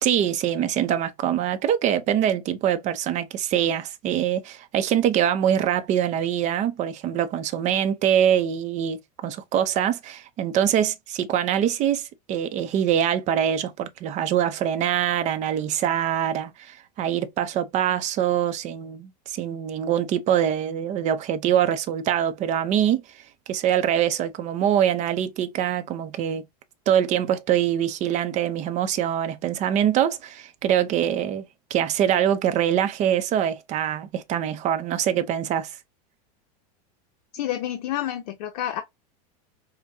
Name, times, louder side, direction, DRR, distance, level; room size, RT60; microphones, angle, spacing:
voice 1, 0.0-23.0 23.5-26.5 26.9-31.4 31.7-35.7, right 10 dB, 35° right, 0.6 m, -24 dB
voice 2, 37.3-38.8, left 12 dB, 70° left, 0.7 m, -29 dB
5.2 x 2.2 x 2.7 m
supercardioid pair, 135°, 21 cm